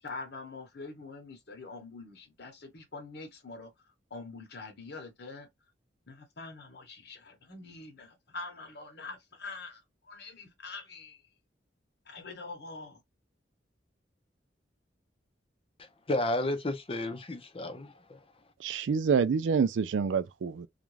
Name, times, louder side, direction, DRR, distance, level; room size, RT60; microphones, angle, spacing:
voice 1, 0.0-3.7 4.1-5.5 6.1-11.2 12.1-13.0, left 3 dB, 65° left, 1.0 m, -44 dB
voice 2, 15.8-18.2, left 1 dB, 30° left, 0.6 m, -32 dB
voice 3, 18.6-20.7, right 6 dB, 90° right, 0.4 m, -27 dB
2.5 x 2.2 x 3.1 m
head